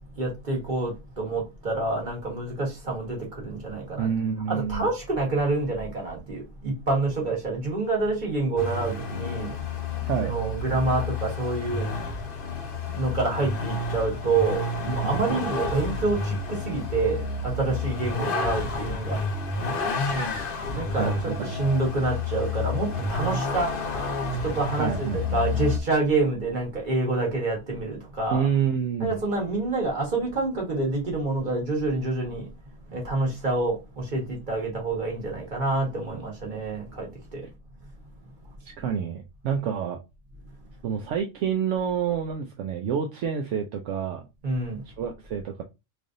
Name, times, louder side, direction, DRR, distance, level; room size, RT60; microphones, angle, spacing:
voice 1, 0.2-4.1 4.5-9.5 10.2-11.9 12.9-19.2 20.7-23.7 24.4-28.4 29.0-32.4 32.9-37.4 44.4-44.8, right 3 dB, 40° right, 1.6 m, -27 dB
voice 2, 4.0-4.9 10.0-10.3 15.0-15.5 21.0-21.5 24.7-25.4 28.3-29.2 38.6-40.0 40.8-44.3 44.9-45.6, right 7 dB, 75° right, 0.9 m, -28 dB
Vehicle, 8.6-25.8, left 3 dB, 50° left, 0.8 m, -30 dB
3.3 x 2.5 x 3.7 m
omnidirectional pair, 1.3 m